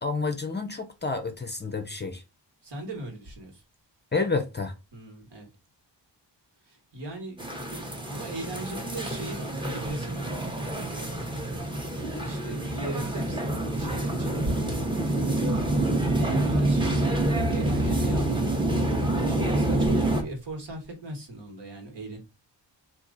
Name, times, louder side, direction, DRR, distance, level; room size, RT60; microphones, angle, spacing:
voice 1, 0.0-2.2 4.1-4.7, left 4 dB, 25° left, 0.5 m, -29 dB
voice 2, 2.6-3.6 4.9-5.5 6.7-11.3 11.9-15.5 15.9-18.8 19.3-22.2, right 1 dB, 65° right, 1.5 m, -38 dB
sound 1, 7.4-20.2, right 1 dB, 10° right, 0.7 m, -27 dB
2.9 x 2.4 x 3.8 m
wide cardioid pair, 95°, 44 cm